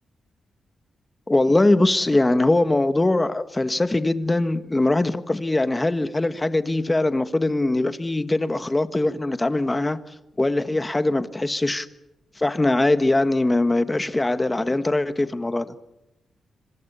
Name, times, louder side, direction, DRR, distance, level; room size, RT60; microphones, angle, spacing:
voice 1, 1.3-10.0 10.4-11.9 12.4-15.7, left 2 dB, 15° left, 1.5 m, -21 dB
26.0 x 24.5 x 6.9 m
cardioid pair, 110°, 0 cm